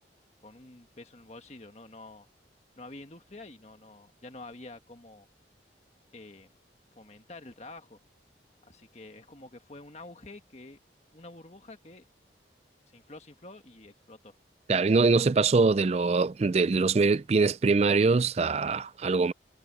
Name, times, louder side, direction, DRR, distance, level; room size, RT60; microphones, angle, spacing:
voice 1, 0.4-2.3 2.8-5.3 6.1-6.5 6.9-8.0 8.6-10.8 11.1-12.0 12.9-14.4, left 2 dB, 35° left, 1.6 m, -48 dB
voice 2, 14.7-19.3, right 4 dB, 35° right, 0.4 m, -23 dB
head